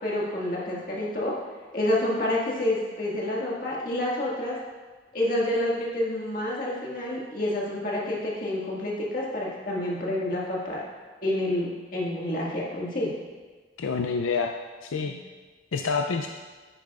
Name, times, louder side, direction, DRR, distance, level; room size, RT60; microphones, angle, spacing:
voice 1, 0.0-1.3 1.7-4.6 5.1-10.8 11.2-13.1, left 1 dB, 45° left, -4 dB, 1.8 m, -28 dB
voice 2, 13.8-14.5 14.8-15.1 15.7-16.3, left 5 dB, 80° left, 4 dB, 0.4 m, -27 dB
10.0 x 9.0 x 2.4 m, 1.4 s
head